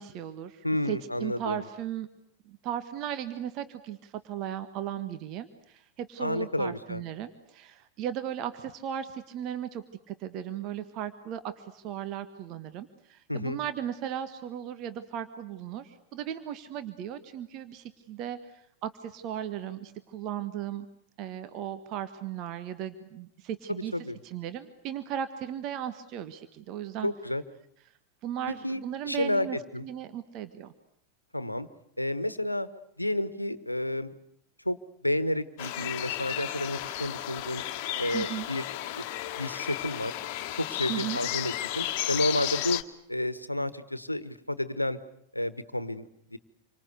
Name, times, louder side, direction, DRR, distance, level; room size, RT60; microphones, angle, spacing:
voice 1, 0.0-2.1 2.4-18.4 18.8-20.9 21.2-23.9 24.2-27.1 28.2-29.6 29.8-30.7 38.1-38.5 40.9-41.2, right 10 dB, 40° right, 10 dB, 1.6 m, -36 dB
voice 2, 0.6-1.6 6.2-7.0 13.3-13.6 23.7-24.2 27.0-27.4 28.6-29.9 31.3-31.7 32.0-32.7 33.0-34.1 34.6-34.8 35.0-37.6 38.0-38.7 38.9-39.1 39.4-40.2 40.5-42.8 43.1-45.0 45.3-46.4, left 1 dB, 85° left, 14 dB, 1.3 m, -31 dB
sound 1, 35.6-42.8, left 13 dB, 45° left, 1.6 m, -33 dB
28.0 x 25.0 x 8.2 m, 0.73 s
figure-of-eight pair, 90°, 0 cm